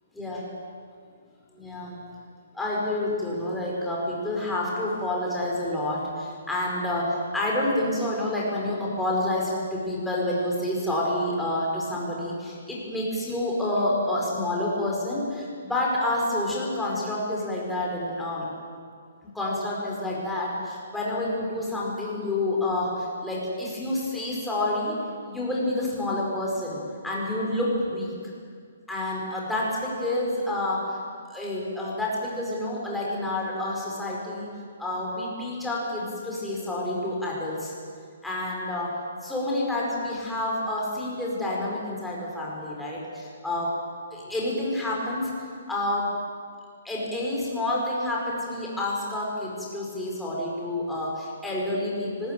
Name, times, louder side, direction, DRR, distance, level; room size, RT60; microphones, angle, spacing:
voice 1, 0.1-0.5 1.5-2.0 2.5-18.5 19.3-24.9 25.2-26.8 27.0-28.1 28.9-31.0 31.3-34.5 34.8-37.7 38.2-43.8 44.1-45.3 45.7-46.1 46.8-52.3, left 1 dB, 5° left, -5 dB, 4.9 m, -28 dB
24.0 x 20.5 x 9.1 m, 2.1 s
hypercardioid pair, 175°, 0 cm